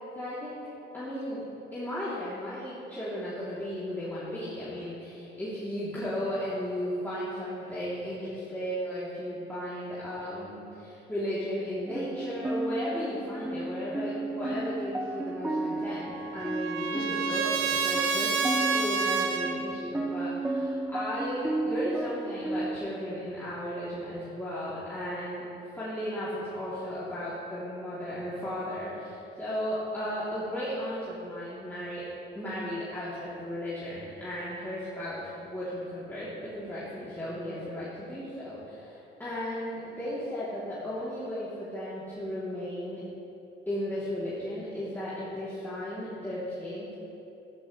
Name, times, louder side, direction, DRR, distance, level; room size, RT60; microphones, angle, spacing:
voice 1, 0.1-0.6 0.9-1.4 1.7-25.5 25.8-32.1 32.3-43.0 43.7-46.9, equal, 10° left, -12 dB, 3.3 m, -35 dB
sound 1, 11.9-22.8, right 2 dB, 5° right, 0.5 m, -33 dB
Trumpet, 15.7-19.6, right 5 dB, 90° right, 0.9 m, -29 dB
14.0 x 13.0 x 3.4 m, 2.9 s
cardioid pair, 90°, 20 cm